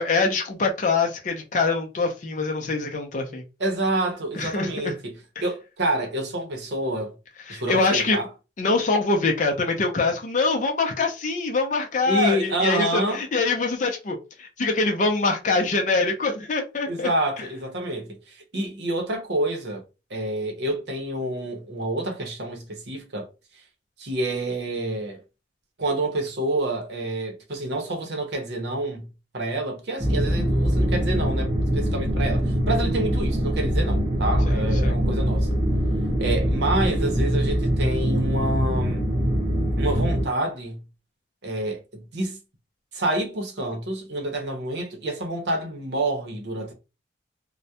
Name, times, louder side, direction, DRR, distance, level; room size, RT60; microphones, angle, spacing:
voice 1, 0.0-3.4 4.3-4.9 7.5-8.2 8.6-17.1 34.5-34.6 34.8-34.9, left 3 dB, 40° left, 0.5 m, -24 dB
voice 2, 3.6-7.2 7.5-8.3 12.1-13.2 16.9-19.8 20.1-23.3 24.0-25.2 25.8-29.1 29.3-35.5 36.2-39.0 39.8-40.8 41.4-42.4 42.9-46.7, right 1 dB, 60° right, 0.7 m, -28 dB
sound 1, 30.0-40.2, equal, 25° right, 0.8 m, -23 dB
2.2 x 2.1 x 2.7 m
head